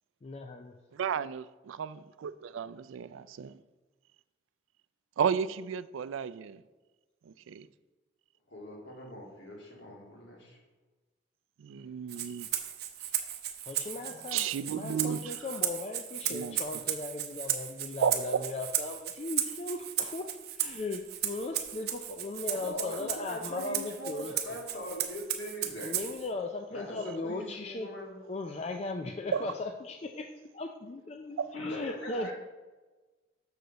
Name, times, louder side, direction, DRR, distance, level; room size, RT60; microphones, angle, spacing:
voice 1, 0.2-0.7 13.6-24.6 25.8-27.9 28.3-32.3, left 3 dB, 35° left, 0.4 m, -38 dB
voice 2, 0.9-3.6 5.2-6.6 7.3-7.7 11.6-12.5 14.3-15.3 16.3-16.6 18.0-18.6 29.3-29.4 31.4-31.5, right 7 dB, 90° right, 0.3 m, -33 dB
voice 3, 8.5-10.6 14.0-14.2 22.5-26.0 26.7-28.2 29.3-29.5 31.5-32.3, equal, 65° left, 2.0 m, -41 dB
Rattle (instrument), 12.1-26.3, right 10 dB, 55° right, 0.7 m, -35 dB
6.7 x 6.5 x 3.9 m
head